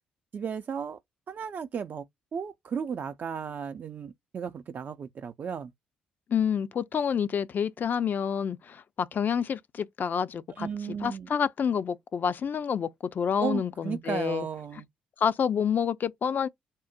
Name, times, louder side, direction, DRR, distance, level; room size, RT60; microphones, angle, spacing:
voice 1, 0.3-1.0 1.3-2.1 2.3-5.7 10.6-11.3 13.4-14.9, right 7 dB, 45° right, 0.5 m, -34 dB
voice 2, 6.3-10.7 11.0-14.5 15.2-16.5, left 7 dB, 50° left, 0.6 m, -28 dB
3.7 x 2.1 x 4.2 m
hypercardioid pair, 45°, 4 cm